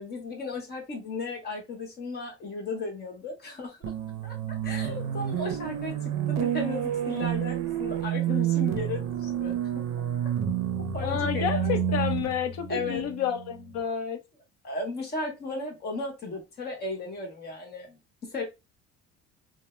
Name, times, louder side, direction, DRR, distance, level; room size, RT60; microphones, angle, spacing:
voice 1, 0.0-3.9 4.2-4.3 4.6-9.8 10.9-12.0 12.7-13.0 14.6-18.4, left 3 dB, 35° left, 1.0 m, -35 dB
sound 1, 3.8-13.7, right 9 dB, 65° right, 0.5 m, -29 dB
voice 2, 11.0-14.2, left 8 dB, 60° left, 0.6 m, -30 dB
2.2 x 2.0 x 3.0 m
cardioid pair, 145°, 29 cm